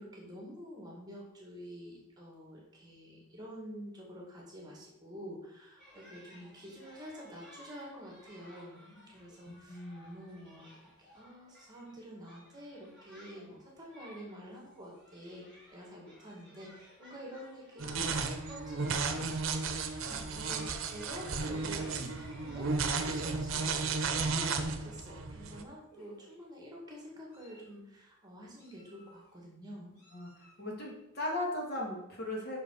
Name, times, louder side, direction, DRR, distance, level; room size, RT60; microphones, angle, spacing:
voice 1, 0.0-10.7 11.0-19.5 19.8-24.5 24.8-30.0, equal, 20° right, -2 dB, 1.7 m, -48 dB
sound 1, 5.8-23.0, equal, 5° left, 2.9 m, -57 dB
voice 2, 9.5-10.1 30.1-30.3 30.6-32.6, left 1 dB, 45° left, -2 dB, 2.1 m, -37 dB
sound 2, 17.8-25.6, right 4 dB, 65° right, 0.8 m, -34 dB
Meow, 20.8-22.0 22.6-22.9 23.7-23.8 24.2-24.4 25.4-25.5 25.9-26.4 27.0-27.8 28.6-29.3 29.9-30.6, right 1 dB, 90° left, 3.1 m, -57 dB
5.8 x 5.7 x 6.2 m, 0.87 s
head